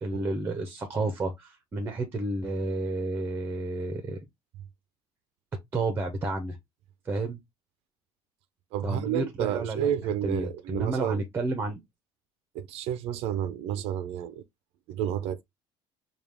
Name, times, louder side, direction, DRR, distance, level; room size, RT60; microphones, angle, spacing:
voice 1, 0.0-4.2 5.7-6.6 7.0-7.4 8.8-11.8, right 2 dB, 20° right, 0.9 m, -31 dB
voice 2, 8.7-11.2 12.5-14.4 14.9-15.4, right 10 dB, 70° right, 0.5 m, -31 dB
4.9 x 2.4 x 3.5 m
cardioid pair, 140°, 11 cm